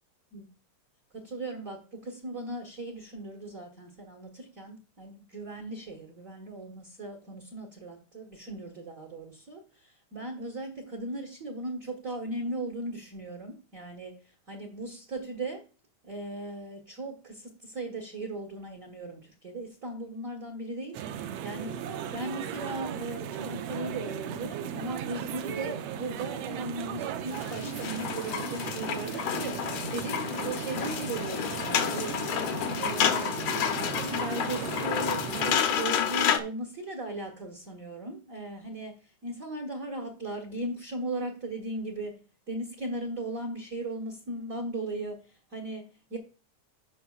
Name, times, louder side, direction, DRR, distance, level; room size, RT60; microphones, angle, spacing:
voice 1, 1.1-15.6 16.0-21.8 22.1-32.4 32.7-46.2, right 2 dB, 45° right, 1.1 m, -38 dB
sound 1, 20.9-35.6, right 9 dB, 80° right, 1.4 m, -37 dB
sound 2, 27.3-36.4, left 8 dB, 75° left, 2.1 m, -30 dB
14.0 x 5.6 x 2.4 m
omnidirectional pair, 3.4 m